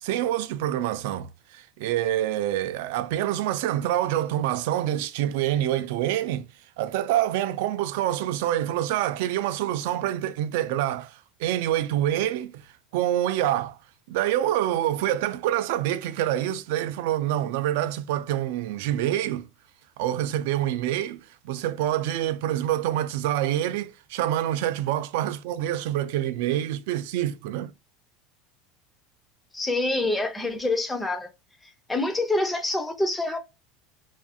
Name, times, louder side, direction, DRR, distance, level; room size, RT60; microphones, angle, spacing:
voice 1, 0.0-6.5 6.8-13.8 14.1-19.5 20.0-27.7, right 12 dB, 70° right, 0.3 m, -26 dB
voice 2, 29.5-31.3 31.6-33.4, left 2 dB, 5° left, 0.4 m, -26 dB
2.5 x 2.4 x 2.5 m
supercardioid pair, 165°, 0 cm